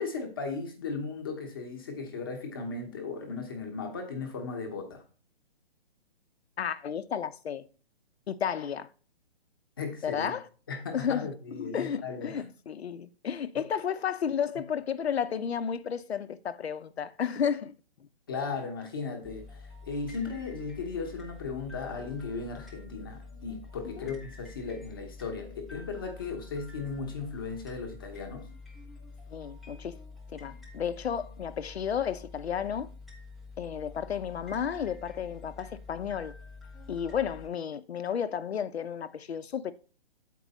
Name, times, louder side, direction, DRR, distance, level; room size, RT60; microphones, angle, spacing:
voice 1, 0.0-5.0 9.8-10.3 10.7-12.5 13.5-13.7 18.3-28.5, left 4 dB, 20° left, 0.9 m, -36 dB
voice 2, 6.6-7.7 8.3-8.9 10.0-10.5 10.9-17.7 24.0-24.1 29.3-30.0 30.3-32.9 33.6-36.3 36.9-39.7, left 8 dB, 85° left, 0.8 m, -32 dB
sound 1, 19.2-37.5, left 4 dB, ahead, 0.3 m, -47 dB
7.7 x 4.6 x 4.0 m
hypercardioid pair, 175°, 31 cm